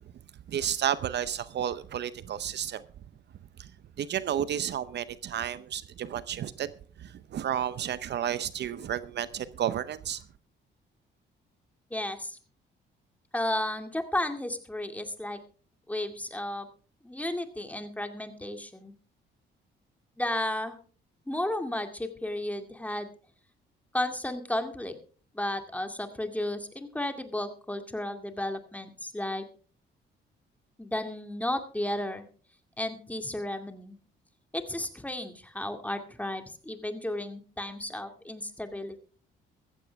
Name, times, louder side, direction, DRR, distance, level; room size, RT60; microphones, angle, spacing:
voice 1, 0.5-2.8 3.6-3.7 4.0-6.7 7.0-10.2, right 10 dB, 60° right, 0.7 m, -31 dB
voice 2, 11.9-12.4 13.3-15.4 15.9-16.7 17.0-18.9 20.2-20.8 21.3-23.1 23.9-24.9 25.3-29.4 30.8-32.2 32.8-34.0 34.5-39.0, left 1 dB, 5° left, 2.2 m, -33 dB
15.0 x 14.5 x 3.4 m
cardioid pair, 90°, 20 cm